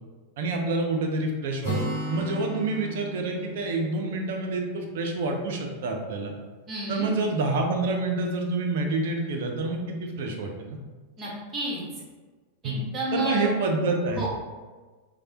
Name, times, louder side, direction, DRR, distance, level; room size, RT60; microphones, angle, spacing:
voice 1, 0.4-1.8 2.1-6.3 6.9-10.8 12.6-12.8 13.1-14.3, right 3 dB, 55° right, 2 dB, 0.4 m, -27 dB
Acoustic guitar, 1.6-5.4, right 1 dB, 45° left, 1.1 m, -35 dB
voice 2, 6.7-7.1 11.2-11.8 12.6-13.5 14.1-14.3, right 1 dB, 20° right, -6 dB, 1.0 m, -31 dB
3.2 x 2.1 x 2.8 m, 1.3 s
figure-of-eight pair, 90°, 0 cm